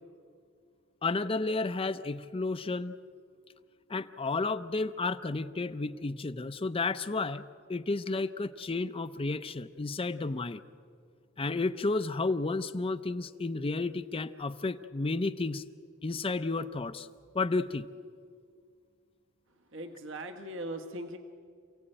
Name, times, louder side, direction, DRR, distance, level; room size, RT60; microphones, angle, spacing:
voice 1, 1.0-2.9 3.9-7.4 7.7-10.6 11.4-15.6 16.0-17.1 17.3-17.9, left 3 dB, 25° left, 11 dB, 0.6 m, -32 dB
voice 2, 19.7-21.2, right 1 dB, 65° right, 6 dB, 1.5 m, -39 dB
28.0 x 17.0 x 8.9 m, 2.2 s
head